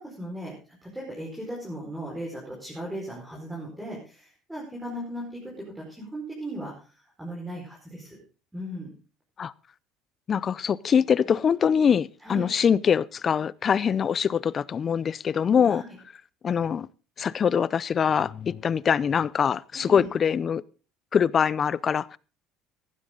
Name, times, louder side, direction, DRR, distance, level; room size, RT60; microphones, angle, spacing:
voice 1, 0.0-6.9 7.2-8.2 8.5-8.9 12.2-12.5 15.7-15.9 19.7-20.1, equal, 5° right, 5.0 m, -37 dB
voice 2, 10.3-15.8 16.4-16.9 17.2-20.6 21.1-22.2, left 7 dB, 35° left, 0.5 m, -23 dB
15.5 x 11.5 x 3.9 m
cardioid pair, 120°, 0 cm